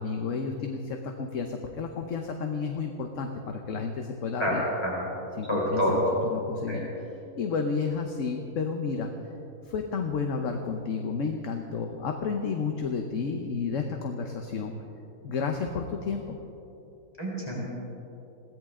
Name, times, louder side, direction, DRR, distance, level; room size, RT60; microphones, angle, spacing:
voice 1, 0.0-4.6 5.4-7.1 7.4-9.1 9.6-14.7 15.2-16.4, left 5 dB, 60° left, 4 dB, 1.3 m, -31 dB
voice 2, 5.5-6.0 6.7-6.8 17.2-17.6, equal, 20° left, -5 dB, 4.0 m, -27 dB
21.5 x 17.0 x 3.7 m, 3.0 s
omnidirectional pair, 1.5 m